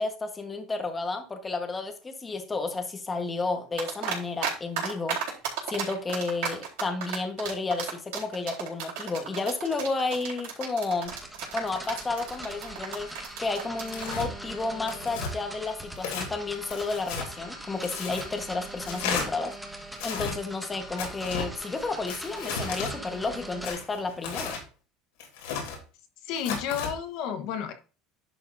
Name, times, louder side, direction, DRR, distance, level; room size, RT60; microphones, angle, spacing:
voice 1, 0.0-5.2 5.7-11.1 11.5-13.1 13.4-19.5 20.0-24.6, left 3 dB, 15° left, 1.3 m, -32 dB
sound 1, 3.8-4.5 4.8-14.2, right 8 dB, 75° right, 4.3 m, -33 dB
sound 2, 11.0-23.7, right 1 dB, 5° right, 1.4 m, -41 dB
Tearing, 13.9-14.3 14.9-15.3 16.0-16.3 16.7-17.3 17.8-18.3 18.8-19.3 19.9-20.3 21.0-21.5 22.1-22.9 23.6-24.6 25.2-25.8 26.4-26.9, left 5 dB, 90° left, 3.2 m, -34 dB
voice 2, 26.2-27.7, left 8 dB, 65° left, 1.2 m, -31 dB
11.0 x 6.2 x 2.7 m
supercardioid pair, 130°, 0 cm